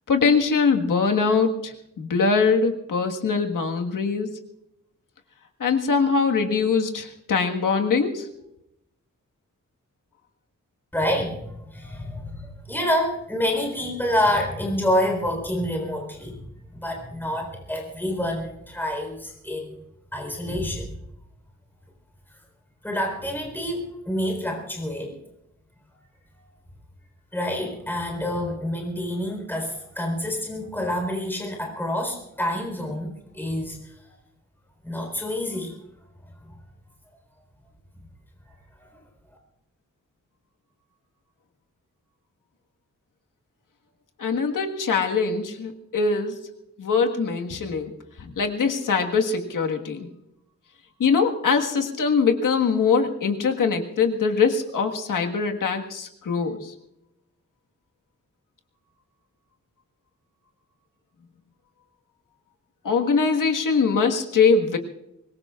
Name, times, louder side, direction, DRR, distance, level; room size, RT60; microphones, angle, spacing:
voice 1, 0.1-4.3 5.6-8.3 44.2-46.4 46.8-50.1 51.0-56.7 62.8-64.8, left 5 dB, 90° left, 3 dB, 1.7 m, -22 dB
voice 2, 10.9-19.8 20.1-20.9 22.3-22.4 22.8-25.2 27.3-34.1 34.8-35.8 36.4-36.6 38.4-38.5 38.8-39.0, left 1 dB, 5° left, 2 dB, 4.2 m, -28 dB
24.0 x 21.0 x 2.5 m, 0.82 s
wide cardioid pair, 130°, 31 cm